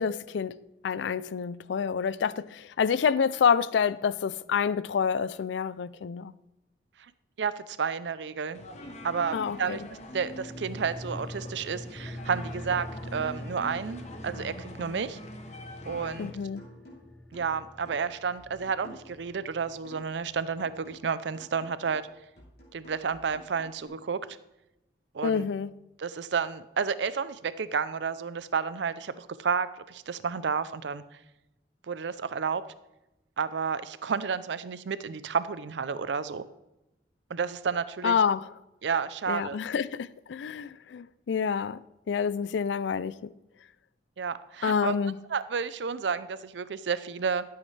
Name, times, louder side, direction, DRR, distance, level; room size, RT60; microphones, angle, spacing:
voice 1, 0.0-6.3 9.3-9.8 16.2-16.7 25.2-25.7 38.0-38.5 39.3-41.8 42.1-43.3 44.6-45.2, left 6 dB, 90° left, 0.4 m, -28 dB
voice 2, 7.4-8.6 9.0-9.8 10.1-15.2 15.9-16.3 17.3-22.1 22.7-24.2 25.1-25.5 26.0-31.0 31.9-32.6 33.4-36.4 37.3-38.2 38.8-39.6 44.2-45.0 45.3-47.4, right 6 dB, 80° right, 0.5 m, -31 dB
sound 1, 8.5-16.3, left 1 dB, 40° left, 0.9 m, -44 dB
sound 2, 10.3-21.2 21.4-21.5, left 1 dB, 5° left, 0.8 m, -44 dB
sound 3, 15.9-16.2 16.6-20.3 20.6-23.9, equal, 60° left, 3.3 m, -52 dB
13.0 x 8.0 x 3.3 m
head